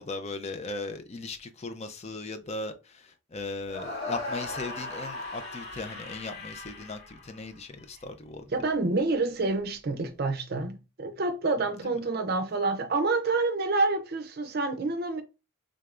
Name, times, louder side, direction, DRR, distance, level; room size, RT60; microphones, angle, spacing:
voice 1, 0.0-8.4 11.8-11.9, left 3 dB, 30° left, 0.5 m, -38 dB
sound 1, 3.6-7.8, left 2 dB, 50° left, 2.0 m, -38 dB
voice 2, 8.5-15.2, right 3 dB, 45° right, 0.5 m, -28 dB
3.8 x 3.3 x 2.4 m
head